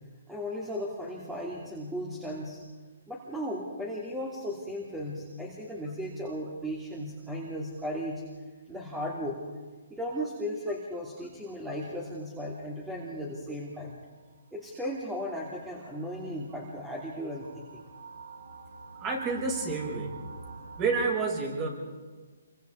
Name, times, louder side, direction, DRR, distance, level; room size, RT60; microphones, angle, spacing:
voice 1, 0.3-2.6 3.1-8.2 8.7-9.4 9.9-14.0 14.5-17.8, equal, 5° right, -4 dB, 2.9 m, -36 dB
sound 1, 12.6-21.1, right 3 dB, 90° right, 5.3 m, -48 dB
voice 2, 19.0-20.1 20.8-21.7, right 4 dB, 25° right, 0 dB, 5.8 m, -29 dB
27.5 x 24.0 x 4.7 m, 1.4 s
hypercardioid pair, 155°, 0 cm